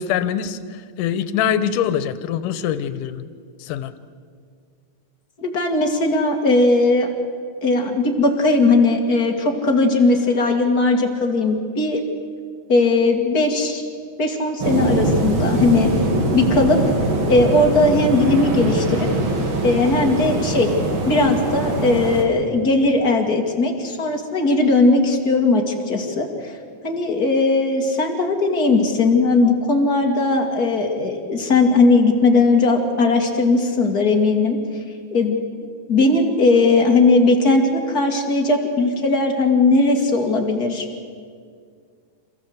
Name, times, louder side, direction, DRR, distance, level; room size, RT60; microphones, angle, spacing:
voice 1, 0.0-3.3 3.6-3.9, left 9 dB, 90° left, 13 dB, 2.5 m, -23 dB
voice 2, 5.4-7.1 7.6-12.0 12.7-13.8 14.2-15.9 16.3-16.8 17.3-19.1 19.6-20.7 21.0-26.5 26.8-34.6 35.1-35.4 35.9-40.9, left 3 dB, 35° left, 2 dB, 2.2 m, -18 dB
sound 1, 14.6-22.2, right 2 dB, 45° right, 2.5 m, -22 dB
28.0 x 15.0 x 8.0 m, 2.1 s
omnidirectional pair, 3.6 m